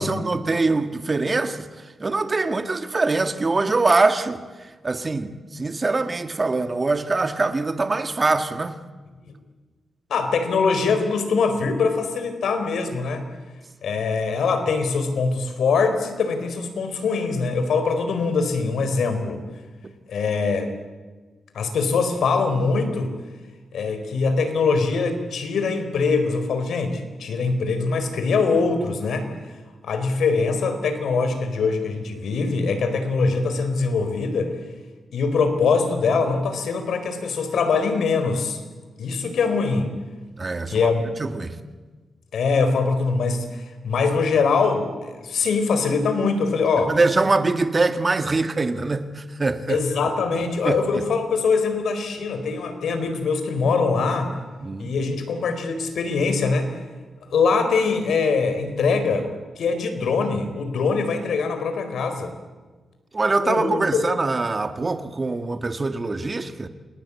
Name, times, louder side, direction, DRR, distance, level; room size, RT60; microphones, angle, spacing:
voice 1, 0.0-8.8 40.4-40.9 41.2-41.6 46.9-49.8 50.3-51.0 54.6-54.9 63.1-66.7, right 3 dB, 30° right, 1.8 m, -23 dB
voice 2, 10.1-13.2 13.8-19.4 20.1-20.7 21.5-23.1 23.7-29.3 29.8-34.5 35.1-38.6 39.0-39.9 40.7-41.1 42.3-46.9 49.7-54.3 54.8-56.8 57.3-59.3 59.6-62.3 63.4-63.8, left 4 dB, 85° left, 4.2 m, -23 dB
29.0 x 20.5 x 8.5 m
cardioid pair, 100°, 0 cm